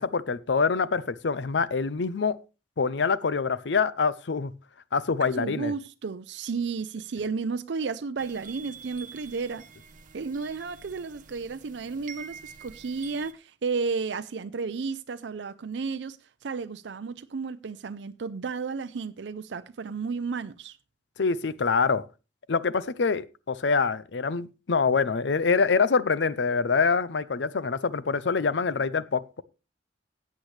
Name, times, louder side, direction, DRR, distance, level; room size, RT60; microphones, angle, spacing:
voice 1, 0.0-2.4 2.8-4.5 4.9-5.7 21.2-22.0 22.5-29.4, left 5 dB, 80° left, 0.6 m, -25 dB
voice 2, 5.2-9.7 10.1-16.2 16.4-20.8, right 4 dB, 80° right, 0.5 m, -33 dB
sound 1, 8.2-13.3, right 6 dB, 50° right, 0.8 m, -47 dB
14.5 x 8.4 x 3.2 m
head